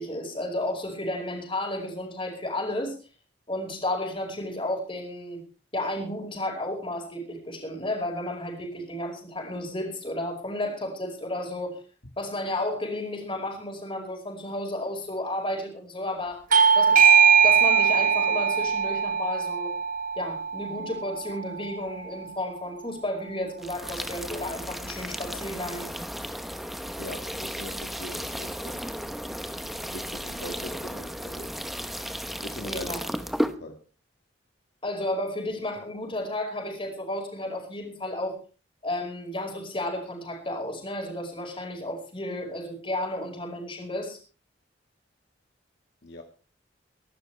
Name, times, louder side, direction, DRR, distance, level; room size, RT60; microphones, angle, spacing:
voice 1, 0.0-3.0 3.5-5.4 5.7-11.8 12.2-16.5 16.8-17.0 17.4-19.7 20.2-25.9 32.7-33.0 34.8-38.4 38.8-44.2, left 1 dB, 30° left, 3 dB, 5.2 m, -32 dB
Bell / Doorbell, 16.5-21.7, right 7 dB, 45° right, 0.9 m, -21 dB
sound 1, 23.6-33.6, equal, ahead, 0.9 m, -34 dB
voice 2, 27.0-28.8 29.9-31.5 32.4-32.9 33.4-33.8 46.0-46.2, left 1 dB, 60° left, 3 dB, 1.9 m, -41 dB
24.0 x 12.0 x 3.3 m, 0.35 s
head